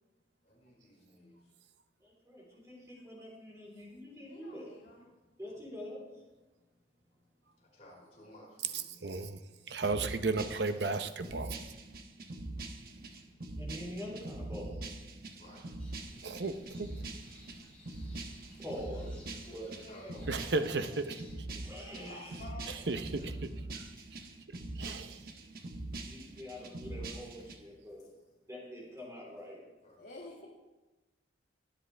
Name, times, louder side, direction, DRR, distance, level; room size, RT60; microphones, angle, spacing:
voice 1, 0.4-1.5 5.4-5.7 7.6-9.3 15.4-15.7 19.7-21.1 21.5-21.9 23.2-23.6 27.0-27.4 29.8-30.1, left 1 dB, 35° left, -5 dB, 5.0 m, -58 dB
voice 2, 2.3-4.7 5.4-6.0 13.6-14.7 18.6-19.1 19.5-19.7 20.0-20.4 21.6-22.5 26.0-28.0 28.5-29.6, equal, 15° right, -4 dB, 3.7 m, -45 dB
voice 3, 4.2-5.1 18.1-18.2 19.4-20.2 20.8-21.0 21.9-22.7 30.0-30.5, left 2 dB, 70° left, -5 dB, 2.4 m, -50 dB
voice 4, 9.0-9.4 9.7-11.6 16.2-16.9 20.3-21.2 22.7-23.5 24.7-25.3, right 3 dB, 70° right, 9 dB, 0.7 m, -34 dB
sound 1, 9.8-27.6, right 2 dB, 55° right, 1.1 m, -43 dB
sound 2, 15.8-21.4, left 1 dB, 5° left, 3.8 m, -58 dB
22.5 x 7.8 x 3.4 m, 1.1 s
head